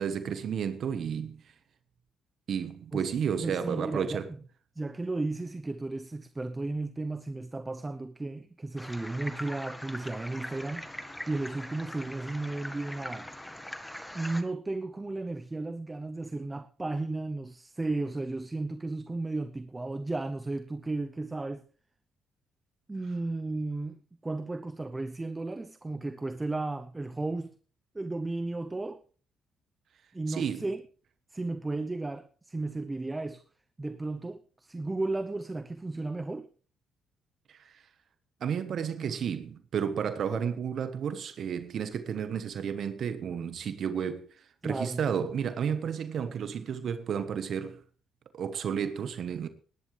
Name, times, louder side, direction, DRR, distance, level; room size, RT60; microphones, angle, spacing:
voice 1, 0.0-1.4 2.5-4.3 30.3-30.7 37.5-37.8 38.4-47.8 48.3-49.5, right 7 dB, 60° right, 1.2 m, -32 dB
voice 2, 3.4-4.2 4.8-10.9 11.3-13.3 14.1-21.6 22.9-27.5 27.9-29.0 30.1-30.8 31.3-33.4 33.8-36.5 44.6-45.0, right 2 dB, 20° right, 0.7 m, -34 dB
sound 1, 8.8-14.4, left 1 dB, 10° left, 1.5 m, -42 dB
19.5 x 10.5 x 3.3 m
cardioid pair, 90°, 0 cm